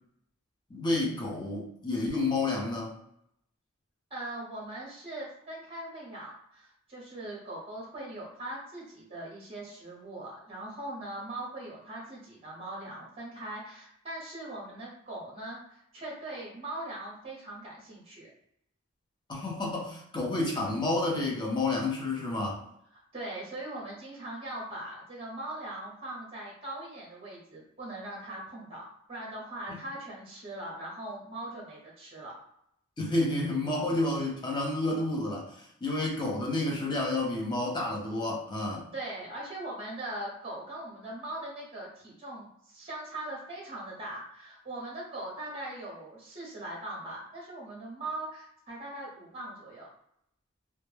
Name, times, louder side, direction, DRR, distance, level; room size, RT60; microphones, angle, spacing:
voice 1, 0.7-2.9 19.3-22.6 29.7-29.8 33.0-38.9, left 2 dB, 20° left, -2 dB, 0.5 m, -30 dB
voice 2, 4.1-18.3 22.9-32.3 38.9-49.9, right 1 dB, 25° right, -3 dB, 0.7 m, -40 dB
2.1 x 2.0 x 3.1 m, 0.74 s
head